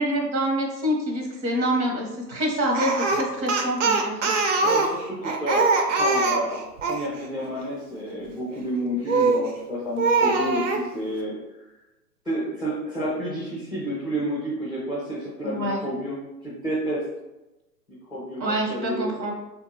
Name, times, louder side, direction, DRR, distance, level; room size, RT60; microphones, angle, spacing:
voice 1, 0.0-4.4 15.4-15.8 18.4-19.3, right 1 dB, 80° right, 0 dB, 1.2 m, -26 dB
Speech, 2.7-7.1 9.1-9.5 10.0-10.8, right 3 dB, 50° right, 0.6 m, -22 dB
voice 2, 4.6-11.4 12.2-16.2 16.4-17.0 18.1-18.4 18.7-19.2, equal, ahead, -8 dB, 0.4 m, -30 dB
3.6 x 2.5 x 2.9 m, 1.0 s
figure-of-eight pair, 125°, 50 cm